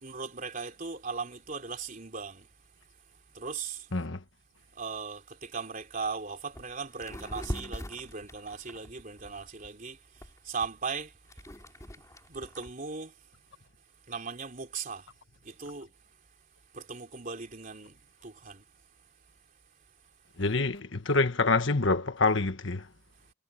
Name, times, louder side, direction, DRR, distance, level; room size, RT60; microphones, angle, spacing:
voice 1, 0.0-2.5 3.3-3.9 4.8-10.0 10.4-11.1 12.3-13.1 14.1-15.1 15.4-15.9 16.7-18.0 18.2-18.6, right 5 dB, 40° right, 3.5 m, -38 dB
voice 2, 3.9-4.2 20.4-22.9, left 3 dB, 65° left, 1.5 m, -26 dB
sound 1, 6.0-6.1 6.5-6.7 7.0-9.7 10.2-12.7, equal, 15° left, 5.0 m, -41 dB
head